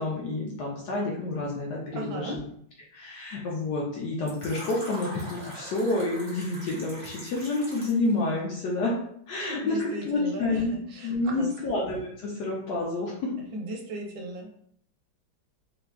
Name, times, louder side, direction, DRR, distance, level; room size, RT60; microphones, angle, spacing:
voice 1, 0.0-2.4 2.9-8.9 9.3-10.8 11.0-13.3, left 2 dB, 70° left, -3 dB, 1.0 m, -29 dB
voice 2, 1.9-2.4 9.4-10.6 10.9-11.5 13.5-14.5, right 1 dB, 75° right, 1 dB, 1.4 m, -36 dB
Fill (with liquid), 4.3-8.1, equal, 15° right, 0.9 m, -42 dB
3.8 x 2.2 x 2.3 m, 0.66 s
omnidirectional pair, 2.2 m